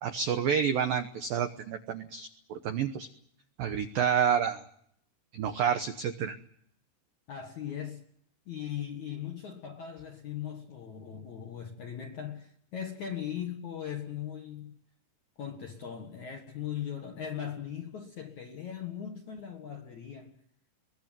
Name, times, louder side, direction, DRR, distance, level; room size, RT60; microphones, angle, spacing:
voice 1, 0.0-3.1 3.6-4.6 5.3-6.4, right 8 dB, 90° right, 2.0 m, -29 dB
voice 2, 7.3-8.0 8.5-14.7 15.4-20.3, left 9 dB, 60° left, 1.9 m, -39 dB
23.0 x 18.0 x 9.0 m
omnidirectional pair, 5.9 m